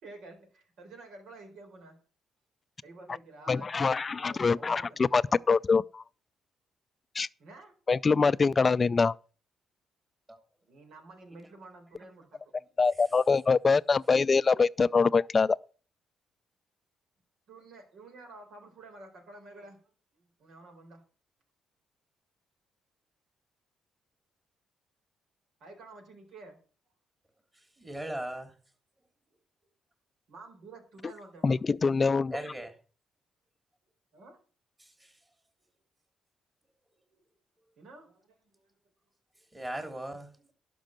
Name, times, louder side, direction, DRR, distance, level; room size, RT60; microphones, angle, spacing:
voice 1, 0.0-2.0 2.8-5.0 5.3-5.4 7.4-7.7 10.6-12.5 17.5-19.8 20.1-21.0 25.6-26.6 30.3-31.6 34.1-34.4 37.8-38.6, right 3 dB, 75° right, 4.2 m, -50 dB
voice 2, 3.5-5.2 5.5-6.0 7.2-7.3 7.9-9.2 12.8-15.6 31.4-32.3, left 4 dB, 35° left, 0.4 m, -24 dB
voice 3, 27.5-28.5 32.3-32.8 34.8-35.1 39.5-40.5, right 1 dB, 20° right, 3.2 m, -39 dB
12.0 x 5.4 x 7.5 m
cardioid pair, 90°, 0 cm